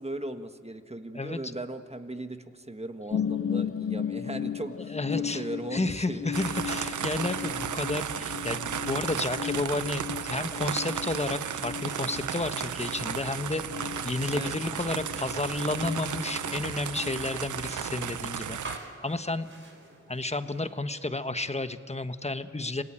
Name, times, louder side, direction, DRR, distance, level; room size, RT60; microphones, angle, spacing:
voice 1, 0.0-6.3 14.3-14.5, right 1 dB, 20° right, 8 dB, 1.6 m, -38 dB
sound 1, 3.1-16.6 16.9-17.7 18.1-18.2, left 8 dB, 50° left, 0.6 m, -36 dB
voice 2, 4.9-5.4 5.7-13.6 14.0-19.5 20.1-22.8, left 2 dB, 20° left, 10 dB, 1.3 m, -31 dB
sound 2, 6.3-18.8, right 8 dB, 85° right, 0.8 m, -34 dB
sound 3, 11.5-20.9, right 2 dB, 45° right, 4.4 m, -51 dB
27.5 x 18.0 x 9.0 m, 2.4 s
cardioid pair, 50°, 29 cm